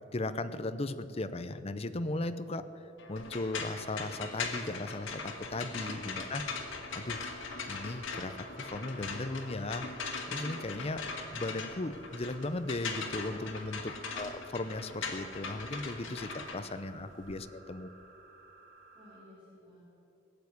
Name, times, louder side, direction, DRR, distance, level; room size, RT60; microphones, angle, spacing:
voice 1, 0.1-6.4 6.9-7.2 7.7-9.9 10.3-11.1 11.3-17.9, left 2 dB, 30° left, 11 dB, 0.6 m, -37 dB
sound 1, 3.0-12.0, left 2 dB, 60° left, 1.5 m, -53 dB
sound 2, 3.2-17.4, left 4 dB, 90° left, 1.8 m, -40 dB
sound 3, 7.1-19.2, right 3 dB, 60° right, 2.9 m, -57 dB
voice 2, 13.9-14.5 17.2-18.1 18.9-19.8, left 1 dB, 10° right, -9 dB, 3.8 m, -58 dB
18.0 x 7.2 x 9.5 m, 2.9 s
head